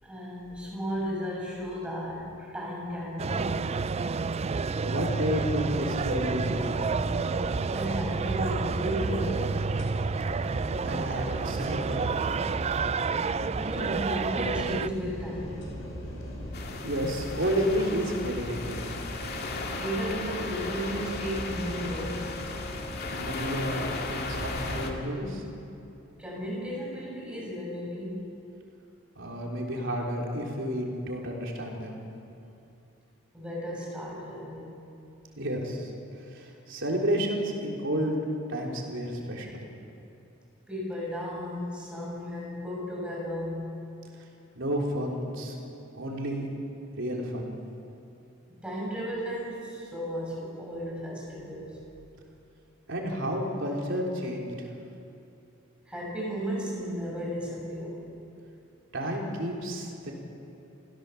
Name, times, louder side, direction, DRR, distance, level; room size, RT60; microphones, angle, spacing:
voice 1, 0.0-3.8 7.7-9.5 13.6-15.8 19.8-22.3 26.2-28.3 30.3-30.4 33.3-34.8 40.7-43.8 48.5-51.8 55.8-58.1, equal, 5° right, -4 dB, 6.4 m, -34 dB
sound 1, 3.2-14.9, right 4 dB, 30° right, 0.4 m, -29 dB
voice 2, 4.8-6.7 10.8-12.5 16.8-18.9 23.1-25.5 29.2-32.0 35.4-35.9 36.3-38.2 38.5-39.6 44.6-45.6 45.9-46.5 46.9-47.6 52.9-54.5 58.9-60.1, equal, 65° right, -1 dB, 3.8 m, -31 dB
sound 2, 5.5-25.0, equal, 70° left, 5.0 m, -39 dB
sound 3, 16.5-24.9, left 3 dB, 50° left, 2.2 m, -37 dB
27.0 x 16.5 x 7.2 m, 2.7 s
head